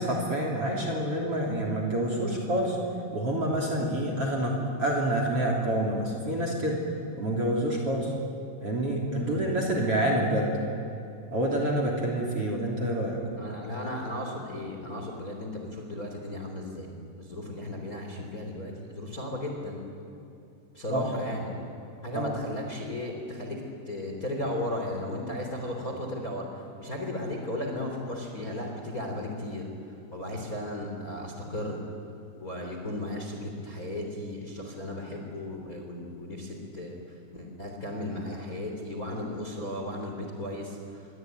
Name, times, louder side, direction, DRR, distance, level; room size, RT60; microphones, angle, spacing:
voice 1, 0.0-2.8 3.1-6.8 7.2-8.1 8.6-10.5 11.3-13.2 20.9-21.1 22.1-22.3, right 1 dB, 35° right, 0 dB, 3.6 m, -27 dB
voice 2, 13.4-16.9 17.2-19.8 20.7-21.5 22.0-23.6 23.9-29.6 30.1-31.8 32.4-37.0 37.3-41.1, left 1 dB, 20° left, 2 dB, 3.2 m, -35 dB
27.0 x 23.5 x 9.4 m, 2.6 s
omnidirectional pair, 5.2 m